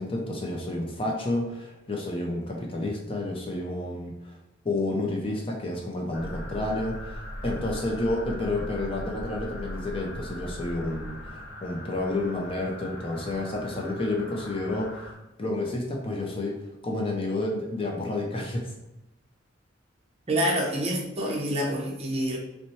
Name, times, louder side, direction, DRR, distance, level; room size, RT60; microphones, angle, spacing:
voice 1, 0.0-4.4 4.6-15.1 15.4-16.5 16.8-18.7, left 2 dB, 30° left, 0 dB, 0.6 m, -30 dB
sound 1, 6.1-15.1, equal, 60° left, 1.1 m, -39 dB
voice 2, 20.3-22.4, equal, 30° right, -1 dB, 0.8 m, -27 dB
5.5 x 2.2 x 3.1 m, 0.93 s
head